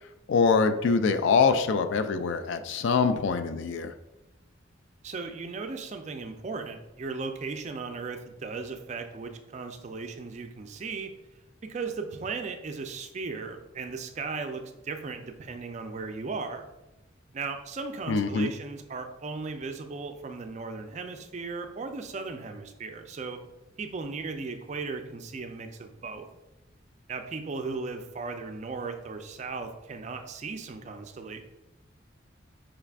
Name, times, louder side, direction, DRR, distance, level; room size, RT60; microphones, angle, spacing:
voice 1, 0.3-3.9 18.1-18.5, left 5 dB, 70° left, 10 dB, 0.3 m, -24 dB
voice 2, 5.0-11.1 11.6-16.7 17.3-23.4 23.8-26.3 27.1-31.4, right 4 dB, 35° right, 6 dB, 0.3 m, -36 dB
4.9 x 2.4 x 3.4 m, 0.96 s
head